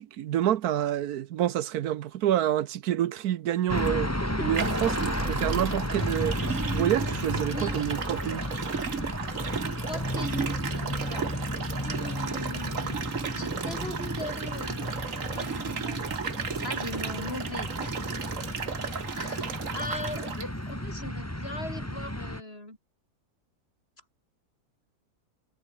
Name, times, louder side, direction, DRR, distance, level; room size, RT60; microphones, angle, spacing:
voice 1, 0.0-4.1 4.4-6.3 6.7-8.4, right 11 dB, 80° right, 1.3 m, -28 dB
sound 1, 3.7-22.4, left 1 dB, 10° left, 3.9 m, -33 dB
sound 2, 3.8-3.9 4.5-20.5, right 6 dB, 60° right, 1.9 m, -35 dB
voice 2, 4.2-4.7 7.5-8.4 9.4-11.4 11.8-16.1 16.6-18.2 19.1-22.8, left 1 dB, 40° left, 7.1 m, -40 dB
omnidirectional pair, 1.6 m